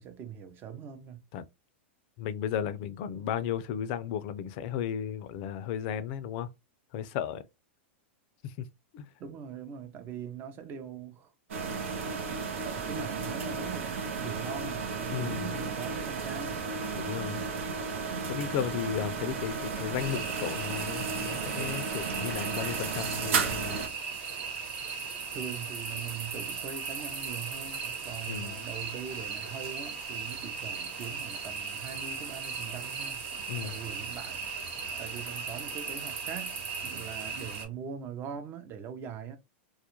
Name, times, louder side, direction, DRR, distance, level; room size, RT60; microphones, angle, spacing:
voice 1, 0.0-1.2 9.2-11.3 12.6-16.6 25.3-33.2 33.6-34.6 35.0-36.6 36.8-39.4, right 7 dB, 30° right, 0.5 m, -42 dB
voice 2, 2.2-6.5 6.9-7.4 8.4-8.7 8.9-9.1 15.1-15.6 16.9-17.4 18.3-23.8 28.3-28.6 33.5-33.7, left 9 dB, 50° left, 0.4 m, -34 dB
sound 1, 11.5-23.9, right 5 dB, 80° right, 0.6 m, -34 dB
sound 2, 20.0-37.6, right 5 dB, 60° right, 1.1 m, -37 dB
2.3 x 2.1 x 2.9 m
hypercardioid pair, 130°, 7 cm